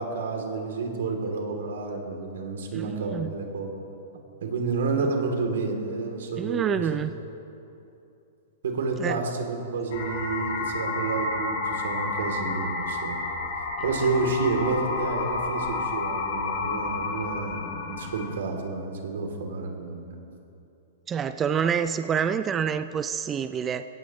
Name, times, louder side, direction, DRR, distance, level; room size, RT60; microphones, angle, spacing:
voice 1, 0.0-3.7 4.4-7.0 8.6-13.2 13.8-20.0, right 4 dB, 85° right, 2 dB, 2.9 m, -30 dB
voice 2, 2.7-3.3 6.4-7.1 9.0-9.2 21.1-23.8, right 7 dB, 15° right, 10 dB, 0.4 m, -27 dB
sound 1, 9.9-18.3, left 3 dB, 65° left, 2.8 m, -30 dB
22.5 x 17.0 x 3.1 m, 2.8 s
hypercardioid pair, 160°, 0 cm